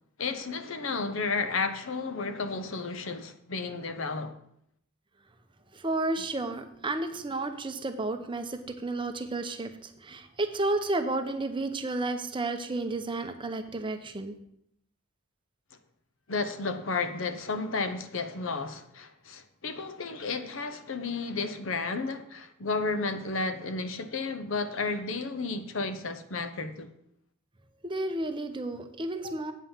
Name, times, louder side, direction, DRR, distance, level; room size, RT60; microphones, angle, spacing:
voice 1, 0.2-4.4 16.3-26.9, left 4 dB, 65° left, 0.8 m, -32 dB
voice 2, 5.7-14.3 27.8-29.5, right 2 dB, 25° right, 0.7 m, -32 dB
8.4 x 5.6 x 7.1 m
head